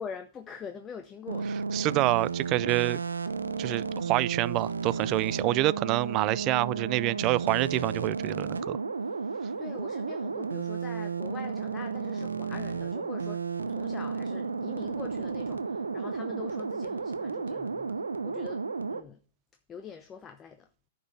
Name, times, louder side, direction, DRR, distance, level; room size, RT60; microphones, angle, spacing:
voice 1, 0.0-1.5 9.3-13.4 13.7-18.6 18.9-19.2 19.7-20.7, left 7 dB, 20° left, 0.8 m, -43 dB
sound 1, 1.3-19.0, right 5 dB, 90° right, 0.8 m, -33 dB
voice 2, 1.7-3.0 3.6-8.8, right 17 dB, 35° right, 0.4 m, -27 dB
10.0 x 5.4 x 6.8 m
hypercardioid pair, 115°, 0 cm